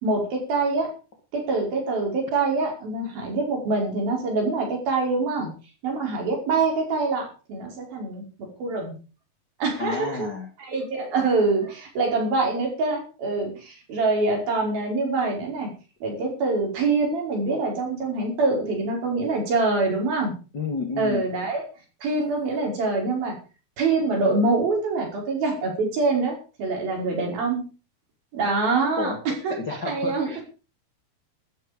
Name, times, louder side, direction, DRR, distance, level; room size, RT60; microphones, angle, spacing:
voice 1, 0.0-0.9 1.3-5.5 5.8-9.0 9.6-10.3 10.6-15.7 16.0-20.3 21.0-21.6 22.0-23.4 23.8-27.6 28.3-29.5 29.9-30.4, right 3 dB, 60° right, 1 dB, 7.0 m, -25 dB
voice 2, 9.8-10.5 20.5-21.3 29.0-29.2 29.5-30.4, left 4 dB, 40° left, 4 dB, 1.8 m, -30 dB
14.0 x 13.5 x 5.2 m, 0.35 s
omnidirectional pair, 4.7 m